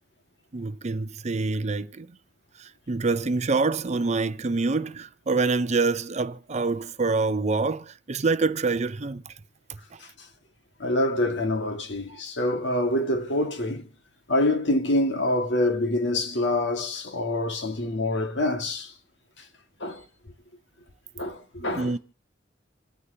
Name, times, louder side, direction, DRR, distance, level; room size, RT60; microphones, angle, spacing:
voice 1, 0.5-2.1 2.6-9.2 21.7-22.0, right 3 dB, 35° right, 0.6 m, -26 dB
voice 2, 10.8-13.8 14.3-18.9 19.4-19.5 19.8-20.0 21.2-22.0, left 1 dB, 65° left, 1.8 m, -26 dB
27.5 x 9.7 x 2.8 m
head